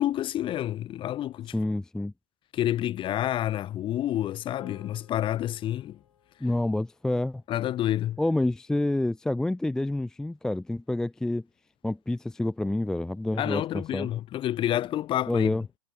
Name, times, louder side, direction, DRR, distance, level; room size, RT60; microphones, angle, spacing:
voice 1, 0.0-1.5 2.5-6.0 7.5-8.2 13.4-15.6, left 12 dB, 30° left, 2.5 m, -28 dB
voice 2, 1.5-2.1 6.4-7.4 8.2-11.4 11.8-14.1 15.3-15.6, left 1 dB, 5° left, 0.5 m, -28 dB
sound 1, 4.6-9.1, left 8 dB, 85° left, 6.9 m, -57 dB
hypercardioid pair, 120°, 18 cm